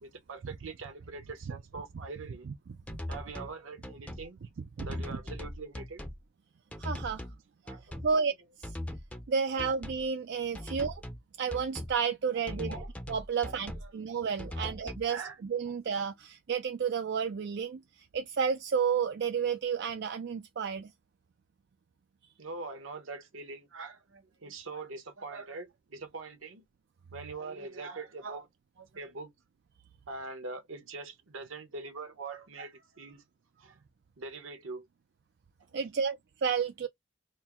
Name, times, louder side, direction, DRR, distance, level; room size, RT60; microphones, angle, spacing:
voice 1, 0.0-2.5 3.1-4.4 4.8-6.0 7.6-8.0 10.6-10.7 12.5-12.9 13.3-13.9 14.6-14.7 15.1-15.4 22.4-26.6 27.1-28.5 28.8-29.3 30.1-33.2 33.6-33.8 34.2-34.9, right 3 dB, 75° right, 1.0 m, -43 dB
voice 2, 2.4-3.0 4.6-5.2 6.8-7.3 8.0-8.3 8.6-8.8 9.3-11.0 11.4-12.8 13.1-20.9 24.5-24.6 35.7-36.9, right 6 dB, 55° right, 0.4 m, -32 dB
sound 1, 2.9-3.5 3.8-4.3 4.8-6.2 6.7-7.4 7.7-8.1 8.6-9.3 9.6-10.1 10.5-11.2 11.5-12.0 12.5-13.9 14.4-15.1, left 1 dB, 5° left, 0.6 m, -40 dB
4.3 x 2.0 x 3.5 m
head